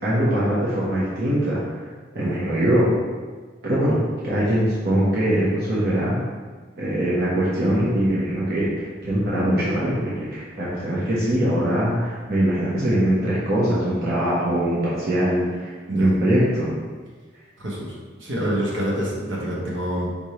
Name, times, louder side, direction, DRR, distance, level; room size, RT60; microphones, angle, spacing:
voice 1, 0.0-1.8 2.1-2.9 3.6-6.2 6.8-16.7, right 1 dB, 55° right, -8 dB, 0.9 m, -22 dB
voice 2, 17.6-20.1, equal, 75° right, -4 dB, 1.1 m, -27 dB
5.2 x 3.3 x 2.8 m, 1.4 s
head